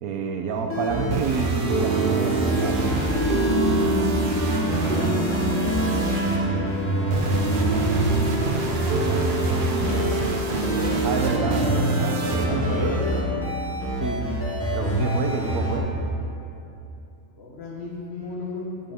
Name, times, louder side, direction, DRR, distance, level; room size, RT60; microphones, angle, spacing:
voice 1, 0.0-3.0 11.0-13.0 14.0-14.2 14.7-15.9, right 5 dB, 75° right, 4 dB, 1.1 m, -28 dB
sound 1, 0.6-10.3 10.6-15.8, right 1 dB, 10° left, 0.8 m, -26 dB
sound 2, 0.9-13.7, right 2 dB, 45° right, 0.8 m, -26 dB
voice 2, 4.1-8.0 8.5-10.8 12.5-13.0 14.9-15.4 17.4-18.9, left 2 dB, 45° left, -3 dB, 1.2 m, -37 dB
9.0 x 7.5 x 3.4 m, 2.7 s
omnidirectional pair, 1.6 m